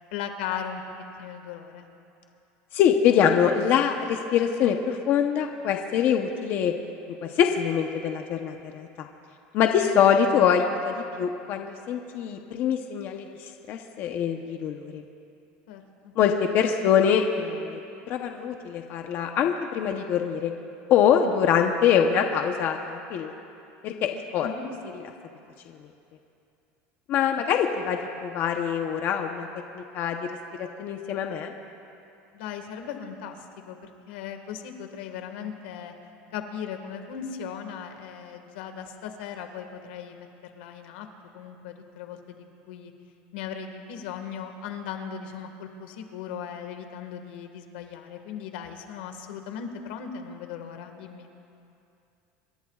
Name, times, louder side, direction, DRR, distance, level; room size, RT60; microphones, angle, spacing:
voice 1, 0.1-1.9 15.7-16.1 24.4-24.7 27.2-27.4 32.3-35.9 36.3-41.1 41.3-42.9 43.3-51.3, left 7 dB, 90° left, 5 dB, 1.7 m, -38 dB
voice 2, 2.7-6.7 7.4-9.1 9.5-13.2 13.7-15.0 16.2-17.8 18.1-20.5 20.9-23.3 23.8-24.5 27.1-29.5 29.7-30.2 30.6-31.5, left 8 dB, 40° left, 4 dB, 0.9 m, -24 dB
27.0 x 22.0 x 2.4 m, 2.7 s
cardioid pair, 160°, 5 cm